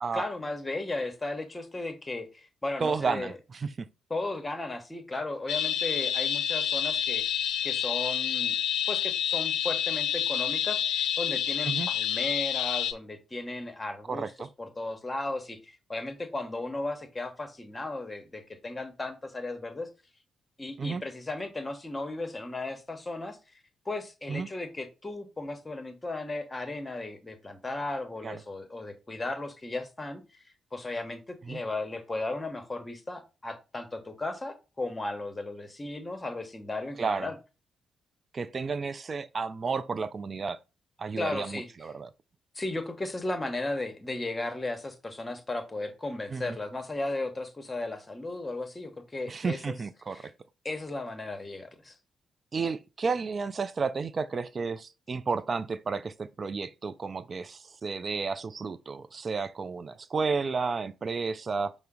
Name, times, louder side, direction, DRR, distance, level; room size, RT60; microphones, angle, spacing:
voice 1, 0.1-3.3 4.1-7.3 7.6-8.6 8.9-14.3 14.6-19.9 20.6-23.4 23.8-30.4 30.7-37.3 41.2-41.7 42.5-49.7 50.1-50.3 50.6-52.0, left 2 dB, 25° left, 0.9 m, -35 dB
voice 2, 2.8-3.9 11.6-11.9 14.1-14.5 20.8-21.0 24.3-24.5 28.2-28.4 31.5-31.6 37.0-37.3 38.3-40.6 41.0-42.1 46.3-46.6 49.3-50.3 52.5-61.7, right 4 dB, 45° right, 0.4 m, -32 dB
sound 1, 5.5-12.9, left 9 dB, 70° left, 0.4 m, -28 dB
5.4 x 2.0 x 3.7 m
hypercardioid pair, 40°, 0 cm